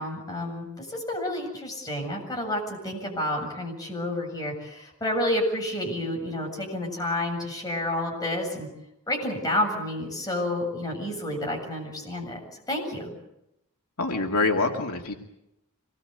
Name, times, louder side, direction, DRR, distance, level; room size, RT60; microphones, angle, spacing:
voice 1, 0.0-8.7 9.1-12.4 12.7-13.1, left 1 dB, 15° left, 0 dB, 7.6 m, -30 dB
voice 2, 14.0-15.1, left 3 dB, 80° left, 3 dB, 2.5 m, -25 dB
26.0 x 21.0 x 8.2 m, 0.85 s
head